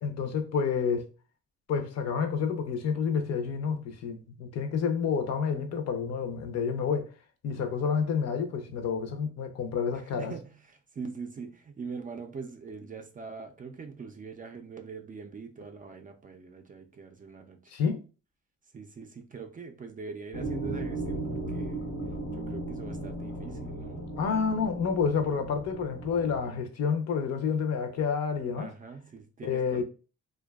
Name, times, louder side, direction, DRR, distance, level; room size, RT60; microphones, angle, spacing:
voice 1, 0.0-1.1 1.7-7.1 7.4-10.3 17.7-18.0 24.2-28.7 29.4-29.8, left 6 dB, 60° left, 0.6 m, -29 dB
voice 2, 9.9-17.7 18.7-21.9 22.3-24.1 28.5-29.8, right 5 dB, 30° right, 0.4 m, -43 dB
sound 1, 20.3-26.5, right 1 dB, 80° left, 1.0 m, -36 dB
2.5 x 2.2 x 2.2 m
cardioid pair, 90°, 30 cm